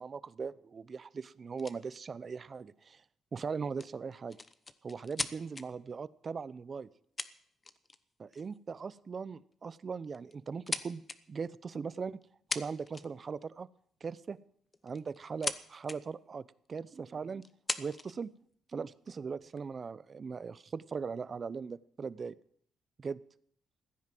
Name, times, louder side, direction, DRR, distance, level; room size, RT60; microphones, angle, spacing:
voice 1, 0.0-3.0 3.3-4.4 4.8-6.9 8.2-11.0 11.3-12.2 12.5-13.7 14.0-14.4 14.8-17.4 17.8-18.3 18.7-22.4 23.0-23.2, right 5 dB, 40° right, 18 dB, 0.6 m, -39 dB
sound 1, 1.6-1.8 3.8-5.6 6.7-6.8 7.2-8.0 8.3-8.6 9.5-9.7 10.1-11.2 12.2-12.3 12.5-13.3 14.7-15.6 15.8-16.0 16.6-16.7 17.4-18.2 18.9-19.6, left 3 dB, 25° left, 0.9 m, -38 dB
15.5 x 9.7 x 7.6 m, 0.65 s
cardioid pair, 90°, 0 cm